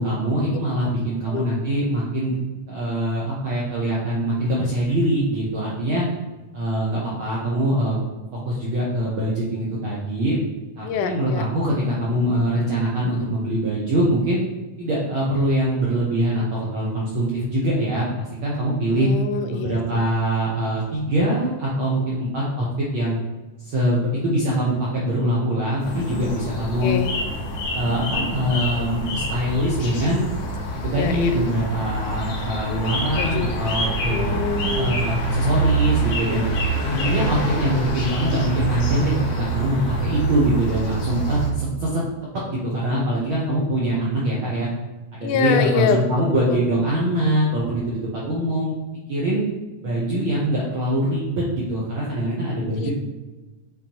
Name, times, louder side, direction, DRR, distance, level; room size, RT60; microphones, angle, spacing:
voice 1, 0.0-2.3 2.7-6.0 6.5-8.1 8.4-10.4 10.8-14.4 14.8-19.1 19.5-22.7 22.9-23.2 23.6-27.0 27.7-30.2 30.8-34.3 34.6-36.4 36.9-42.0 42.5-44.7 45.1-48.7 49.1-49.4 49.8-52.9, right 1 dB, 70° right, -6 dB, 1.2 m, -23 dB
voice 2, 10.8-11.5 18.9-20.0 26.8-27.1 31.0-31.3 33.2-33.5 33.8-35.0 45.2-46.6 52.7-52.9, left 6 dB, 85° left, 7 dB, 2.1 m, -26 dB
sound 1, 25.8-41.5, right 2 dB, 65° left, 1.8 m, -26 dB
8.6 x 3.9 x 2.9 m, 1.2 s
omnidirectional pair, 3.5 m